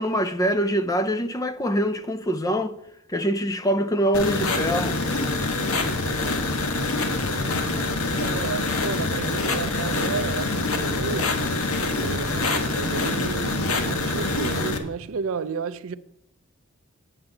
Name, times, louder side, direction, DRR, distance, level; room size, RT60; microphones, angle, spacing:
voice 1, 0.0-2.7 3.1-5.0, equal, 15° left, 0.5 m, -24 dB
sound 1, 4.1-14.8, left 3 dB, 75° left, 1.2 m, -25 dB
voice 2, 8.2-11.4 12.0-15.9, right 5 dB, 65° right, 0.5 m, -32 dB
8.8 x 5.8 x 7.7 m
head